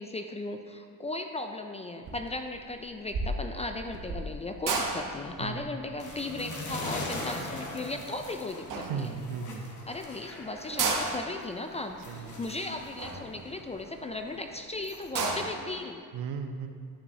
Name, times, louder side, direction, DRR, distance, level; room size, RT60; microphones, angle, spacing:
voice 1, 0.0-9.2 9.9-16.0, left 2 dB, 20° left, 5 dB, 0.3 m, -37 dB
sound 1, 2.0-2.4 2.7-8.2 8.7-9.4 9.9-10.0 10.2-10.3 10.6-14.2 14.6-14.7 14.9-15.7, right 3 dB, 45° right, 1.2 m, -34 dB
sound 2, 6.0-11.2 11.5-15.2, left 2 dB, 45° left, 1.5 m, -41 dB
voice 2, 8.8-9.7 12.1-12.4 16.1-16.7, right 6 dB, 65° right, 7 dB, 0.7 m, -36 dB
9.5 x 6.8 x 2.8 m, 2.1 s
supercardioid pair, 75°, 42 cm